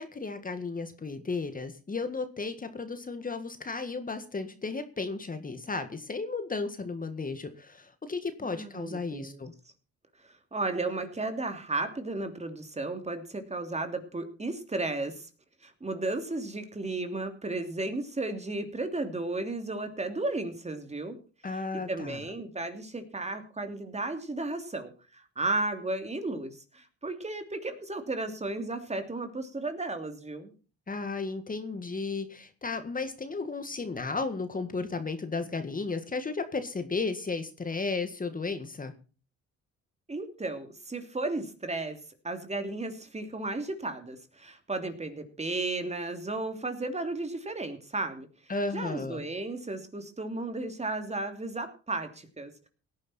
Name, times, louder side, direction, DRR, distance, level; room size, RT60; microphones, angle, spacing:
voice 1, 0.0-9.5 21.4-22.2 30.9-38.9 48.5-49.2, left 3 dB, 30° left, 9 dB, 1.8 m, -34 dB
voice 2, 8.5-9.4 10.5-15.3 15.6-21.2 21.7-30.5 40.1-42.0 42.2-48.3 48.7-52.7, right 2 dB, 20° right, 7 dB, 3.1 m, -34 dB
17.5 x 10.5 x 4.4 m, 0.36 s
cardioid pair, 90°, 30 cm